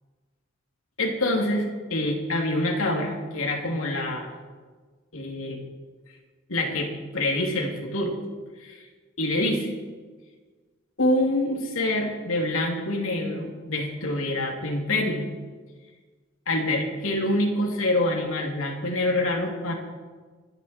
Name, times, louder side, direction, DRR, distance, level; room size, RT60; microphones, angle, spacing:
voice 1, 1.0-4.3 5.1-5.6 6.5-8.1 8.6-8.8 9.2-9.7 11.0-15.3 16.5-19.7, left 1 dB, 85° left, 1 dB, 2.9 m, -26 dB
26.5 x 10.5 x 4.4 m, 1.4 s
head